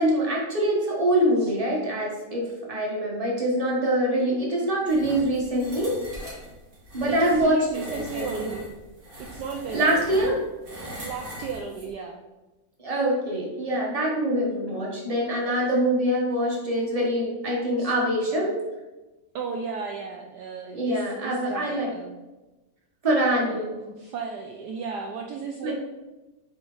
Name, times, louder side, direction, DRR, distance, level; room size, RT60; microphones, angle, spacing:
voice 1, 0.0-5.9 6.9-7.6 7.9-8.5 9.7-10.4 12.8-18.5 20.7-21.9 23.0-23.7 25.6-25.7, right 1 dB, 20° right, -3 dB, 1.5 m, -24 dB
sound 1, 4.9-11.9, equal, 50° right, 2.4 m, -40 dB
voice 2, 7.1-8.7 9.2-10.2 11.0-12.2 14.5-14.8 17.8-17.9 19.3-22.2 23.4-25.7, right 5 dB, 70° right, 3 dB, 1.1 m, -35 dB
8.9 x 4.1 x 3.9 m, 1.1 s
omnidirectional pair, 2.1 m